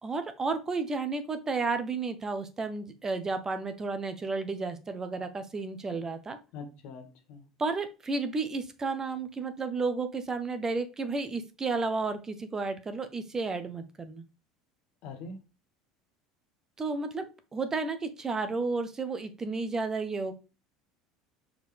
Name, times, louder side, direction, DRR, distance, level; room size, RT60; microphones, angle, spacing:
voice 1, 0.0-6.4 7.6-14.2 16.8-20.3, right 3 dB, 25° right, 1.1 m, -32 dB
voice 2, 6.5-7.4 15.0-15.4, left 4 dB, 60° left, 1.8 m, -43 dB
6.0 x 4.9 x 3.4 m
hypercardioid pair, 70°, 2 cm